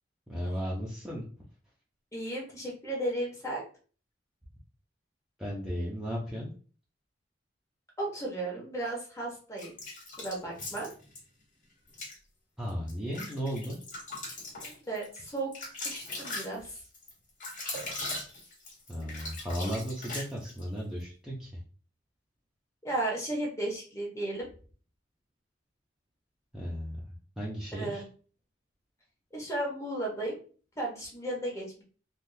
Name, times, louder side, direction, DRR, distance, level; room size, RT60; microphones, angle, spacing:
voice 1, 0.3-1.2 5.4-6.5 12.6-13.8 18.9-21.5 26.5-27.0 27.4-28.0, equal, 5° right, -6 dB, 0.6 m, -35 dB
voice 2, 2.1-3.6 8.0-9.7 10.2-10.9 14.6-16.8 22.8-24.5 27.7-28.0 29.3-30.4 30.8-31.8, right 1 dB, 15° left, -2 dB, 1.1 m, -34 dB
sound 1, 9.6-11.2 11.9-12.2 12.7-20.7, left 2 dB, 45° left, 1.3 m, -40 dB
3.5 x 2.4 x 2.7 m, 0.40 s
head